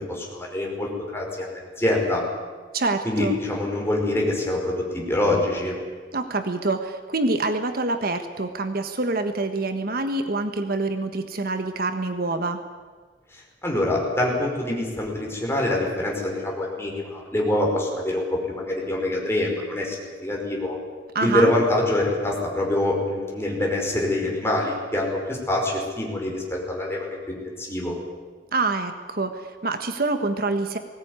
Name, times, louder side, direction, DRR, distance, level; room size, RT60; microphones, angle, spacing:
voice 1, 0.0-2.2 3.0-5.8 13.6-20.0 20.2-20.8 21.2-28.0, left 1 dB, 15° left, -1 dB, 5.3 m, -25 dB
voice 2, 2.7-3.4 6.1-12.6 21.1-21.5 28.5-30.8, right 3 dB, 55° right, 7 dB, 1.4 m, -26 dB
20.0 x 18.0 x 9.7 m, 1.5 s
head